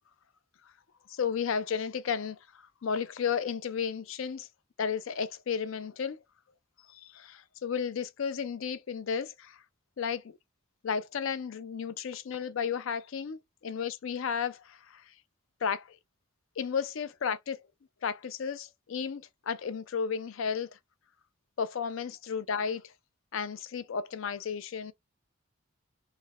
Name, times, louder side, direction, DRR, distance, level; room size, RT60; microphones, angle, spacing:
voice 1, 1.1-2.4 2.8-4.5 4.8-6.2 7.0-9.6 10.0-10.2 10.8-15.0 15.6-15.9 16.6-17.6 18.0-20.7 21.6-22.8 23.3-24.9, left 6 dB, 70° left, 0.4 m, -33 dB
3.3 x 2.0 x 3.4 m
head